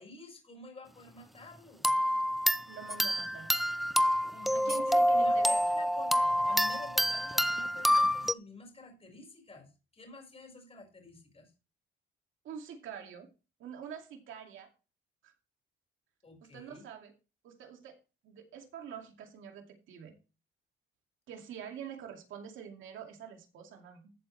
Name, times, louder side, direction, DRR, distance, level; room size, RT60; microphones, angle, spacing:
voice 1, 0.0-1.9 4.3-11.5 16.2-16.9, left 2 dB, 30° left, 3 dB, 4.8 m, -49 dB
sound 1, 1.8-8.3, equal, ahead, 0.6 m, -27 dB
voice 2, 2.7-3.6 4.5-5.6 12.4-13.3 13.6-14.7 15.2-15.3 16.4-17.1 17.4-18.0 18.2-20.1 21.3-24.1, right 8 dB, 80° right, 4 dB, 2.4 m, -46 dB
14.5 x 7.6 x 3.3 m, 0.32 s
cardioid pair, 90°, 20 cm